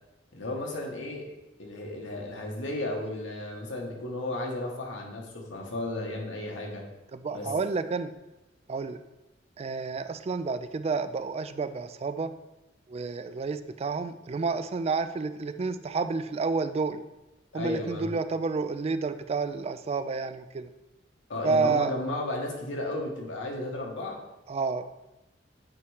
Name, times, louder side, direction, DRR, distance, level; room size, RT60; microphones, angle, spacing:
voice 1, 0.3-6.8 7.3-7.6 17.5-18.1 21.3-24.2, left 2 dB, 90° left, 0 dB, 1.4 m, -34 dB
voice 2, 7.1-8.1 8.7-9.0 9.6-12.3 12.9-17.0 17.5-20.7 21.4-21.9 24.5-24.9, right 4 dB, 35° right, 11 dB, 0.3 m, -30 dB
8.4 x 3.1 x 4.9 m, 0.98 s
head